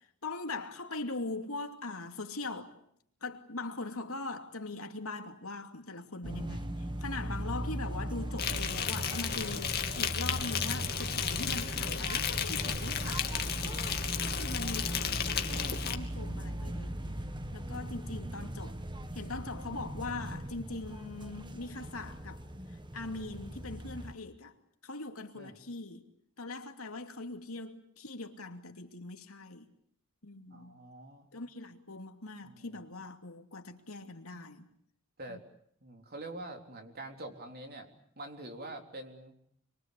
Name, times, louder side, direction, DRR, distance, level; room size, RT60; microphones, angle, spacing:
voice 1, 0.2-2.8 3.2-13.8 14.2-16.9 17.5-18.8 19.1-22.4 22.9-24.5 24.8-26.1 26.4-29.7 30.2-30.7 31.3-34.7 35.3-35.4, left 3 dB, 70° left, 2.7 m, -41 dB
sound 1, 6.2-24.1, right 1 dB, 20° right, 1.4 m, -38 dB
Insect, 8.4-16.0, left 8 dB, 45° left, 2.3 m, -34 dB
voice 2, 14.3-15.0 15.4-15.8 25.3-25.6 30.5-31.3 32.4-32.8 35.2-35.4 35.8-37.9 38.2-39.3, right 1 dB, 45° right, 3.7 m, -45 dB
26.5 x 24.0 x 8.4 m
head